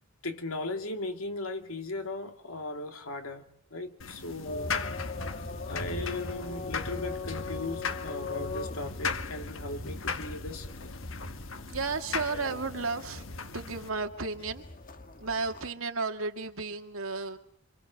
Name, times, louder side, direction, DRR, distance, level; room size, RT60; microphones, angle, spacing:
voice 1, 0.2-4.7 5.7-10.7, left 2 dB, 85° left, 2.6 m, -37 dB
sound 1, 4.0-13.9, left 5 dB, 65° left, 1.3 m, -38 dB
sound 2, 4.4-15.7, left 3 dB, 40° left, 1.4 m, -40 dB
voice 2, 11.7-13.3 13.5-14.6 15.2-17.4, right 4 dB, 80° right, 2.2 m, -33 dB
27.0 x 26.5 x 6.6 m
head